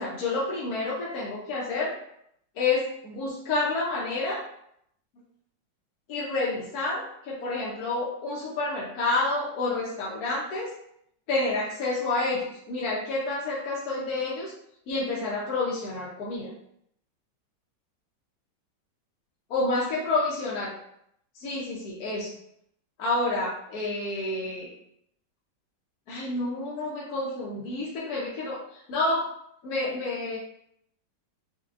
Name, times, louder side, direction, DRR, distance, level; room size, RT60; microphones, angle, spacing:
voice 1, 0.0-1.9 2.6-4.4 6.1-10.7 11.3-14.5 14.9-16.5 19.5-20.7 21.4-22.3 23.0-24.7 26.1-28.6 28.9-29.2 29.6-30.4, left 2 dB, 65° left, -6 dB, 1.1 m, -29 dB
5.8 x 2.2 x 2.5 m, 0.73 s
omnidirectional pair, 1.9 m